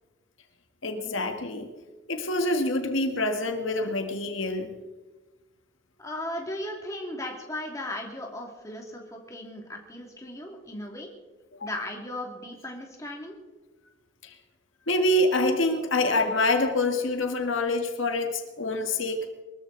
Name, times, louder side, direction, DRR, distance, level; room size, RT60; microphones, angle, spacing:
voice 1, 0.8-1.7 2.1-4.7 11.6-11.7 14.2-14.3 14.9-19.3, left 2 dB, 80° left, 5 dB, 1.7 m, -26 dB
voice 2, 6.0-11.1 11.6-13.4, left 1 dB, 15° left, 0 dB, 2.4 m, -36 dB
23.0 x 14.0 x 4.0 m, 1.2 s
head